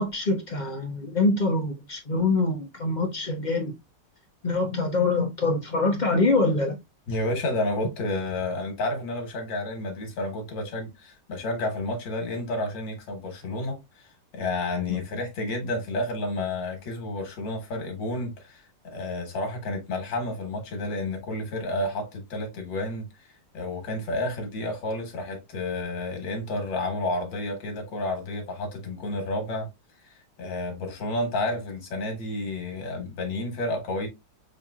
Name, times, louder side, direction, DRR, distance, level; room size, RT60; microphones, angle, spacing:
voice 1, 0.0-3.7 4.4-6.8 14.9-15.0, left 3 dB, 55° left, 0.5 m, -24 dB
voice 2, 7.1-29.7 30.0-34.1, left 2 dB, 85° left, 2.1 m, -31 dB
6.4 x 2.9 x 2.3 m
omnidirectional pair, 2.0 m